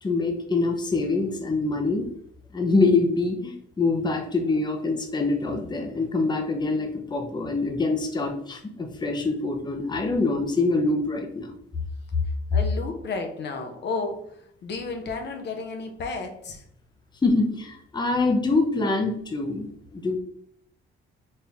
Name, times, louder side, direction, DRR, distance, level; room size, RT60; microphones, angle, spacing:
voice 1, 0.0-2.1 2.5-11.5 17.2-20.2, left 3 dB, 20° left, 3 dB, 0.8 m, -25 dB
voice 2, 12.5-14.2 14.6-16.6, left 4 dB, 60° left, 4 dB, 0.8 m, -32 dB
4.3 x 2.7 x 3.5 m, 0.68 s
cardioid pair, 90°, 20 cm